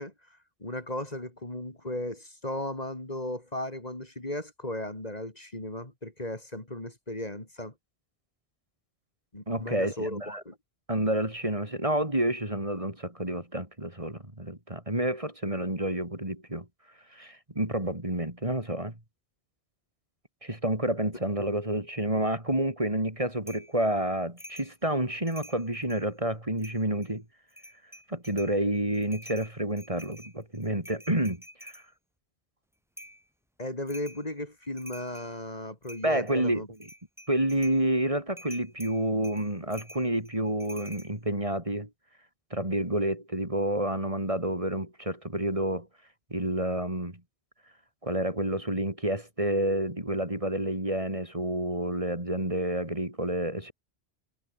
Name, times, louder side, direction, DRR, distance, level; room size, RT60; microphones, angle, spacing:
voice 1, 0.0-7.7 9.3-10.6 33.6-36.7, left 1 dB, 40° left, 3.9 m, -36 dB
voice 2, 9.5-10.4 10.9-16.7 17.1-18.9 20.4-27.2 28.1-31.7 36.0-36.9 37.3-41.9 42.5-45.9 46.3-47.2 48.0-53.7, right 1 dB, 30° right, 4.3 m, -29 dB
sound 1, 23.5-23.7 24.4-24.7 25.1-26.1 26.6-27.1 27.5-28.6 28.9-31.9 33.0-33.2 33.9-34.2 34.6-35.3 35.8-36.4 36.7-37.8 38.4-41.1, equal, ahead, 6.7 m, -48 dB
omnidirectional pair, 1.1 m